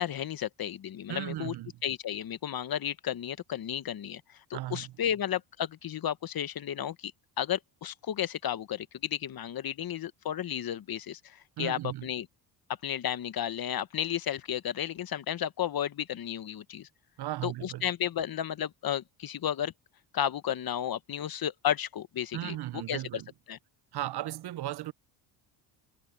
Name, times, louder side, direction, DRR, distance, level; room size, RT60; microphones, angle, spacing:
voice 1, 0.0-1.5 1.8-7.1 7.4-12.3 12.8-16.9 17.4-19.7 20.1-23.2 23.5-23.6, left 10 dB, 45° left, 1.3 m, -33 dB
voice 2, 1.1-1.7 4.5-4.9 11.6-12.1 17.2-17.8 22.3-23.3 23.9-24.9, right 14 dB, 55° right, 0.7 m, -36 dB
supercardioid pair, 75°, 48 cm